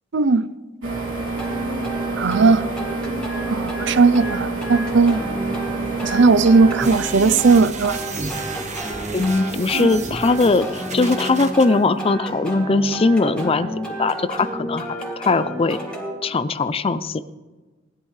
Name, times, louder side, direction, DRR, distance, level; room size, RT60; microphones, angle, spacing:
voice 1, 0.1-0.5 2.2-2.7 3.5-5.2 6.0-8.0 9.7-9.9, right 4 dB, 65° right, 15 dB, 0.6 m, -17 dB
sound 1, 0.8-6.9, right 3 dB, 85° right, 3.1 m, -27 dB
sound 2, 1.4-16.1, right 1 dB, 5° left, 2.4 m, -32 dB
sound 3, 6.8-11.7, right 3 dB, 40° right, 1.3 m, -32 dB
voice 2, 9.1-13.7 14.0-14.9 15.2-15.8 16.2-17.2, left 3 dB, 30° left, 14 dB, 0.5 m, -20 dB
18.5 x 12.0 x 3.3 m, 1.2 s
head